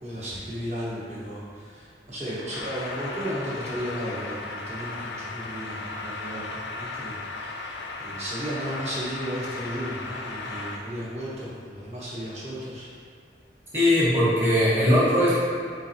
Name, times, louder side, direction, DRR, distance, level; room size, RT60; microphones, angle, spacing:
voice 1, 0.0-12.9, equal, 40° right, -8 dB, 1.1 m, -34 dB
sound 1, 2.5-10.8, left 3 dB, 80° left, 0.4 m, -36 dB
voice 2, 13.7-15.4, left 1 dB, 15° right, -9 dB, 1.0 m, -20 dB
4.4 x 3.8 x 2.7 m, 2.1 s
head